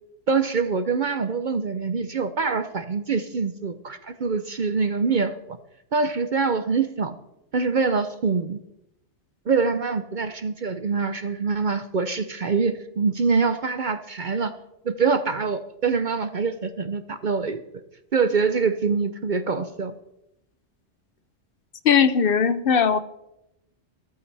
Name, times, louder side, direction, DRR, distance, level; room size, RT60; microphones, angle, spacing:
voice 1, 0.3-5.3 5.9-7.1 7.5-8.6 9.5-14.5 14.8-17.6 18.1-19.9, right 5 dB, 50° right, 0.7 m, -24 dB
voice 2, 21.8-23.0, left 7 dB, 55° left, 0.8 m, -19 dB
14.5 x 13.5 x 3.3 m
omnidirectional pair, 1.2 m